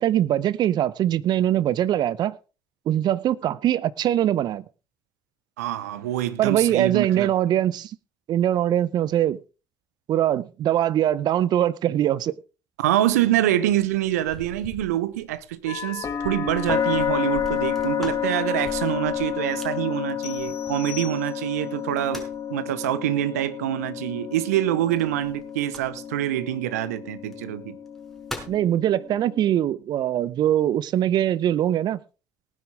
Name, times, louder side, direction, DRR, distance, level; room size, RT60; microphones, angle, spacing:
voice 1, 0.0-2.4 2.9-4.6 6.4-7.9 8.3-9.4 10.1-12.3 28.5-32.0, right 11 dB, 60° right, 0.8 m, -22 dB
voice 2, 5.6-7.3 12.8-22.2 22.5-27.8, right 13 dB, 80° right, 0.9 m, -25 dB
sound 1, 13.7-21.1 21.7-22.5 24.9-26.2 27.2-27.3 27.9-28.7, equal, ahead, 5.5 m, -43 dB
sound 2, 15.7-29.5, left 8 dB, 40° left, 2.5 m, -30 dB
sound 3, 20.2-21.8, left 11 dB, 85° left, 1.9 m, -41 dB
19.0 x 10.0 x 3.6 m
hypercardioid pair, 50°, 8 cm